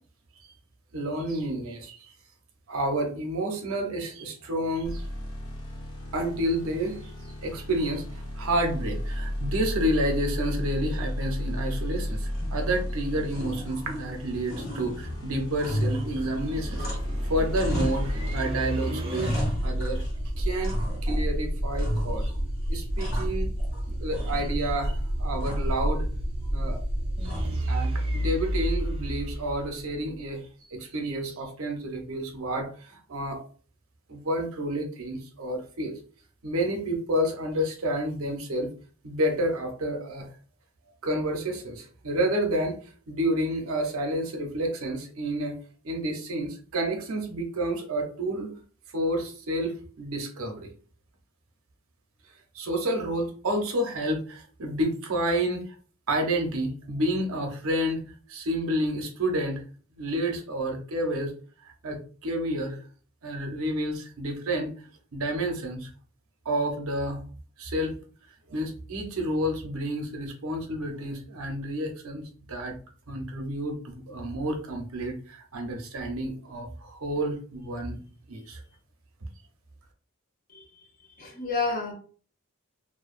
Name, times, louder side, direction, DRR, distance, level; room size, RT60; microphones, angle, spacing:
voice 1, 0.9-2.1 2.7-5.0 6.1-7.1 7.4-16.9 17.2-19.4 19.6-20.1 20.4-20.8 21.0-22.3 22.7-23.5 23.9-26.1 26.5-26.8 27.4-33.4 34.1-35.9 36.4-38.7 39.0-40.3 41.0-45.6 45.8-48.5 48.9-50.7 52.5-55.8 56.1-58.0 58.3-59.6 60.0-61.3 61.6-62.8 63.2-64.7 65.1-65.9 66.4-67.2 67.6-68.0 68.5-72.8 73.1-78.0 78.3-78.6, right 1 dB, 70° right, 3 dB, 0.6 m, -30 dB
sound 1, 4.8-18.4, equal, 85° left, 1.2 m, -33 dB
sound 2, 12.3-12.9 13.3-14.2 14.5-17.2 17.5-18.5 18.8-20.2 20.6-21.3 21.8-22.4 22.7-23.8 24.1-24.8 25.4-25.8 27.2-27.7, equal, 70° left, 1.1 m, -34 dB
sound 3, 14.3-30.2, equal, 25° right, 0.4 m, -30 dB
voice 2, 81.2-81.9, left 3 dB, 40° left, 1 dB, 0.6 m, -29 dB
2.5 x 2.2 x 2.4 m, 0.41 s
head